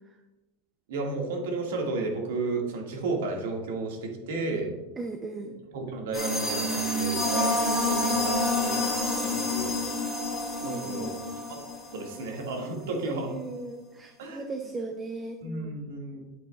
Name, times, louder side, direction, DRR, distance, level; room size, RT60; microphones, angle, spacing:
voice 1, 0.9-4.7 5.7-8.9 9.2-10.2 10.6-11.1 11.5-11.7 11.9-13.4 14.2-14.6 15.4-16.2, right 3 dB, 80° right, 1 dB, 1.8 m, -33 dB
voice 2, 5.0-5.5 10.6-11.2 13.0-15.8, right 3 dB, 15° right, 5 dB, 0.4 m, -37 dB
sound 1, 6.1-12.4, left 1 dB, 10° left, 2.3 m, -28 dB
8.4 x 8.4 x 2.3 m, 1.1 s
supercardioid pair, 170°, 0 cm